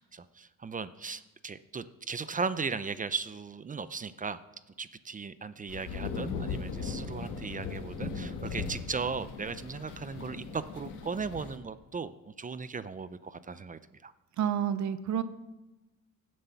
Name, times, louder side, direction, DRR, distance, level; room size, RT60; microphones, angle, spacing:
voice 1, 0.0-4.4 4.8-14.1, right 5 dB, 25° right, 14 dB, 0.6 m, -37 dB
sound 1, 5.7-11.6, left 5 dB, 85° left, 1.8 m, -38 dB
voice 2, 14.4-15.2, right 9 dB, 70° right, 13 dB, 0.8 m, -29 dB
16.0 x 7.6 x 5.9 m, 1.1 s
cardioid pair, 90°, 30 cm